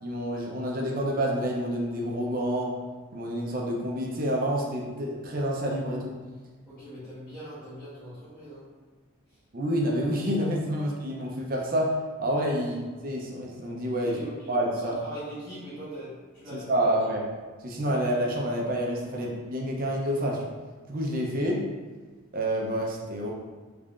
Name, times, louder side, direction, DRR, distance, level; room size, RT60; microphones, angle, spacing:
voice 1, 0.0-2.7 3.1-6.2 9.5-11.9 12.2-14.1 14.5-14.9 16.5-17.2 17.6-20.4 20.9-21.6 22.3-23.3, equal, 45° right, -2 dB, 0.6 m, -28 dB
voice 2, 6.7-8.6 9.3-9.4 14.0-14.5 14.8-16.9, right 1 dB, 10° left, -17 dB, 1.2 m, -41 dB
3.6 x 3.3 x 2.5 m, 1.4 s
head